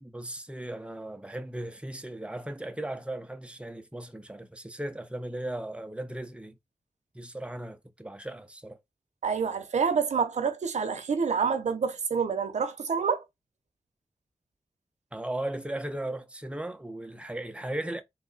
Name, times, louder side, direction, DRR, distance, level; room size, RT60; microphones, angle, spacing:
voice 1, 0.0-6.5 7.1-8.8 15.1-18.0, right 1 dB, 10° right, 0.7 m, -37 dB
voice 2, 9.2-13.2, right 6 dB, 85° right, 0.7 m, -27 dB
3.4 x 2.2 x 3.9 m
wide cardioid pair, 80°, 12 cm